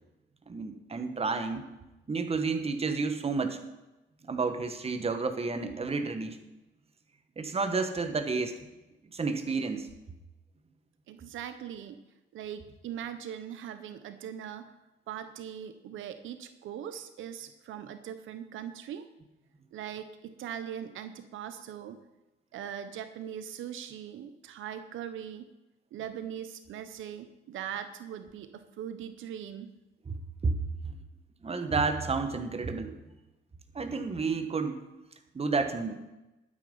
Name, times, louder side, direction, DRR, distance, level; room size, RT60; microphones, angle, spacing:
voice 1, 0.5-1.6 2.1-3.6 4.3-6.4 7.4-8.6 9.1-9.9 30.1-30.2 30.4-30.6 31.4-33.0 33.7-34.8 35.3-36.0, right 4 dB, 30° right, 7 dB, 1.5 m, -30 dB
voice 2, 11.1-12.0 12.3-14.7 15.1-19.1 19.7-22.0 22.5-25.5 25.9-29.7, right 9 dB, 80° right, 10 dB, 0.9 m, -40 dB
12.0 x 9.3 x 5.5 m, 0.99 s
cardioid pair, 90°, 20 cm